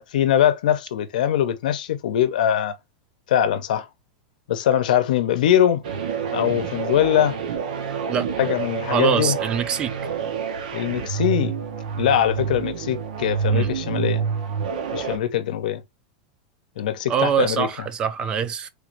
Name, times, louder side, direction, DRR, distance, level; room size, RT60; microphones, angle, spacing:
voice 1, 0.0-2.8 3.3-3.9 4.5-5.8 6.3-7.4 8.4-9.4 10.7-11.6 12.0-14.2 14.9-15.8 16.8-17.7, left 10 dB, 85° left, 0.6 m, -22 dB
sound 1, 5.8-15.2, right 6 dB, 90° right, 0.8 m, -28 dB
voice 2, 8.9-9.9 13.5-13.7 17.1-18.7, right 7 dB, 20° right, 0.3 m, -23 dB
3.3 x 2.5 x 3.1 m
supercardioid pair, 165°, 4 cm